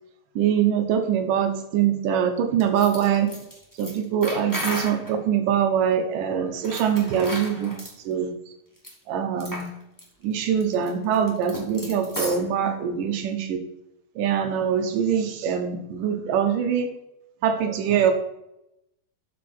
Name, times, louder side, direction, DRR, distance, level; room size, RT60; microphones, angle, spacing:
voice 1, 0.4-3.4 3.8-7.8 8.0-8.3 9.1-9.7 10.2-13.6 14.2-16.9 17.4-18.1, right 8 dB, 70° right, 5 dB, 2.7 m, -23 dB
sound 1, 2.6-5.1 6.6-7.9 8.8-8.9 9.4-9.7 10.0-10.1 10.4-12.5, equal, 10° left, 1.2 m, -34 dB
12.5 x 7.6 x 4.4 m, 0.86 s
omnidirectional pair, 4.2 m